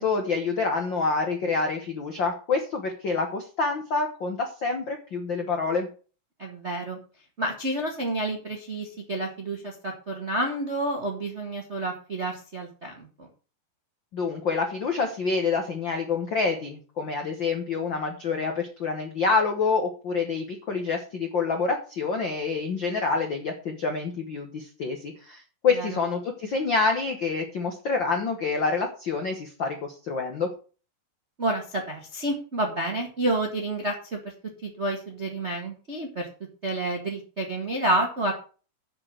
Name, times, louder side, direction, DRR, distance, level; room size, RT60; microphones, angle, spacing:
voice 1, 0.0-5.9 14.1-30.5, left 4 dB, 65° left, 3 dB, 1.1 m, -27 dB
voice 2, 6.4-7.0 7.4-13.1 25.8-25.9 31.4-34.3 34.6-36.3 36.6-38.3, right 1 dB, 45° right, 1 dB, 0.8 m, -29 dB
7.2 x 6.8 x 7.6 m, 0.37 s
omnidirectional pair, 4.1 m